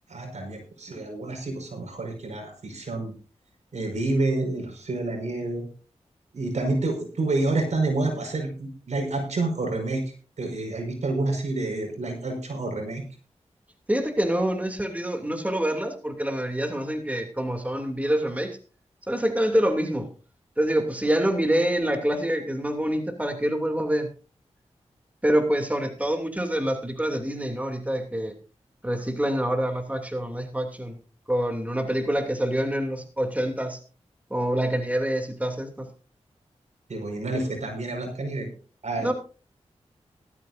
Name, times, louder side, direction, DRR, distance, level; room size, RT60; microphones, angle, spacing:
voice 1, 0.1-3.1 3.7-5.7 6.3-10.0 10.4-13.0 36.9-38.5 38.8-39.1, right 2 dB, 75° right, 3 dB, 5.3 m, -28 dB
voice 2, 13.9-18.6 19.1-20.1 20.6-24.1 25.2-28.3 28.8-31.0 31.3-33.8 34.3-35.9 39.0-39.1, right 1 dB, 10° right, 4 dB, 2.8 m, -26 dB
17.5 x 13.5 x 2.7 m, 0.36 s
cardioid pair, 50°, 12 cm